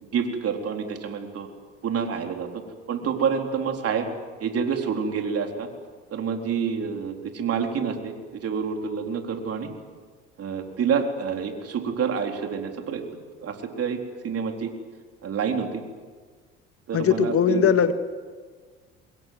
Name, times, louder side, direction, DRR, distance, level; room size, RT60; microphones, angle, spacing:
voice 1, 0.1-1.5 1.8-2.5 2.9-4.1 4.4-5.7 6.1-9.7 10.4-13.0 13.4-14.7 15.2-15.8 16.9-17.6, right 6 dB, 50° right, 4 dB, 4.1 m, -28 dB
voice 2, 16.9-17.9, left 7 dB, 50° left, 10 dB, 1.9 m, -20 dB
24.5 x 21.5 x 7.8 m, 1.5 s
hypercardioid pair, 65°, 31 cm